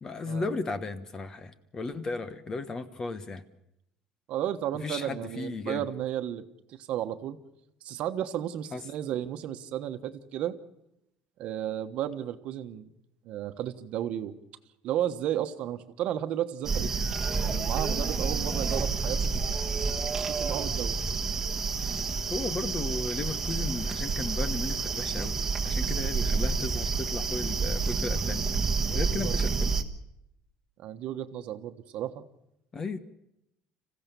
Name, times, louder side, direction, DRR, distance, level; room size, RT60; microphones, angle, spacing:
voice 1, 0.0-3.4 4.8-5.9 8.7-8.8 22.3-25.4 25.6-28.5 28.9-29.7 32.7-33.0, left 3 dB, 25° left, 12 dB, 1.2 m, -35 dB
voice 2, 4.3-6.4 6.7-7.4 7.8-10.6 11.4-12.9 13.2-14.4 14.8-16.9 17.4-19.3 20.3-20.9 28.9-29.4 30.8-32.2, right 11 dB, 55° right, 8 dB, 1.3 m, -33 dB
sound 1, 16.6-29.8, right 4 dB, 15° right, 1.5 m, -29 dB
26.5 x 15.5 x 7.0 m, 0.83 s
cardioid pair, 145°, 2 cm